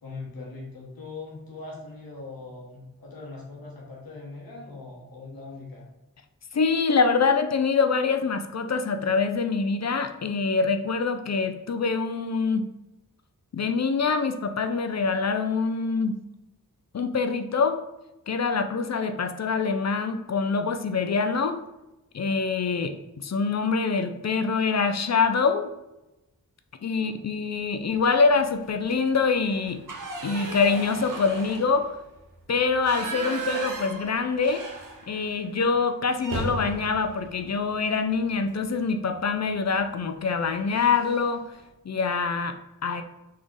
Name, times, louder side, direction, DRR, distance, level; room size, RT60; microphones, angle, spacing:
voice 1, 0.0-5.9 26.7-27.1, left 3 dB, 85° left, -3 dB, 1.2 m, -41 dB
voice 2, 6.5-12.7 13.5-16.2 16.9-17.8 18.3-21.6 22.1-25.7 26.8-29.8 30.2-31.9 32.5-34.7 35.1-41.4 41.8-42.6 42.8-43.0, left 4 dB, 50° left, 8 dB, 0.5 m, -25 dB
sound 1, 28.0-28.4 28.8-28.9 29.3-35.4 35.7-35.8 36.2-38.3 39.7-39.9 40.3-40.5 40.7-41.4, right 2 dB, 65° right, 0.9 m, -37 dB
3.7 x 3.2 x 3.9 m, 0.97 s
cardioid pair, 40°, 35 cm